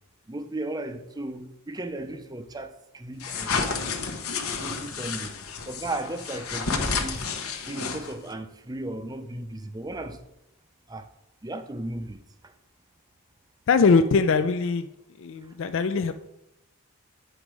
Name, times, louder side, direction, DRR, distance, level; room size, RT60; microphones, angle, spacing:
voice 1, 0.3-3.9 4.6-5.3 5.7-7.2 7.7-10.2 10.9-11.0 11.4-12.2, right 2 dB, 15° right, 0.5 m, -35 dB
sound 1, 3.2-8.3, left 5 dB, 75° left, 1.0 m, -31 dB
voice 2, 13.7-14.9 15.2-16.1, left 4 dB, 60° left, 0.3 m, -21 dB
9.1 x 5.1 x 4.7 m
head